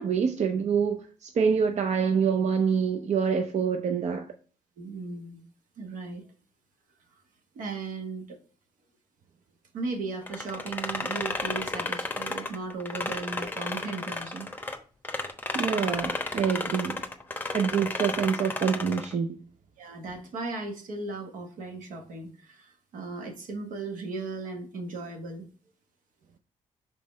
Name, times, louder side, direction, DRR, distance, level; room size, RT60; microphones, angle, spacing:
voice 1, 0.0-4.3 15.5-17.0 17.5-19.4, right 6 dB, 60° right, 0.6 m, -26 dB
voice 2, 4.8-5.4 5.8-6.3 7.5-8.4 9.7-14.5 19.8-25.5, right 3 dB, 80° right, 1.4 m, -37 dB
sound 1, 10.3-14.8 15.0-19.1, left 2 dB, 15° left, 0.9 m, -32 dB
5.3 x 4.1 x 4.4 m
cardioid pair, 70°, 13 cm